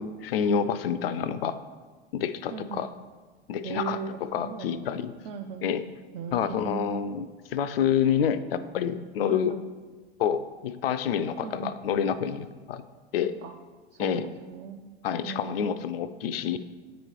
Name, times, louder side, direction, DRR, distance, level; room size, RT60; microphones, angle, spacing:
voice 1, 0.0-1.6 2.1-2.9 3.5-5.1 5.6-5.9 6.3-9.6 10.2-12.8 13.1-13.3 14.0-14.3 15.0-16.6, left 8 dB, 65° left, 13 dB, 0.4 m, -28 dB
voice 2, 2.5-2.9 3.6-4.8 5.2-5.7 6.1-7.0 9.3-9.6 11.4-11.7 13.4-13.6 13.9-14.9 15.2-15.6, right 6 dB, 30° right, 4 dB, 0.4 m, -38 dB
8.9 x 3.1 x 4.4 m, 1.4 s
figure-of-eight pair, 80°, 32 cm